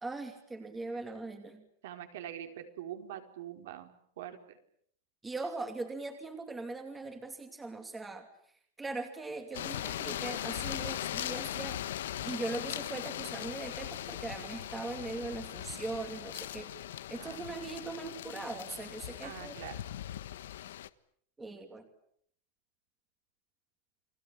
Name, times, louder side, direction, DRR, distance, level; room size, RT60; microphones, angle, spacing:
voice 1, 0.0-1.6 5.2-8.3 8.8-11.8 12.2-16.7 17.1-19.6 21.4-21.9, right 3 dB, 10° right, 6 dB, 2.6 m, -40 dB
voice 2, 1.8-3.9 4.2-4.4 17.2-17.6 19.2-19.8, right 11 dB, 65° right, 6 dB, 4.3 m, -44 dB
sound 1, 9.5-20.9, left 12 dB, 90° left, 1.3 m, -39 dB
30.0 x 21.5 x 8.8 m, 0.66 s
supercardioid pair, 175°, 0 cm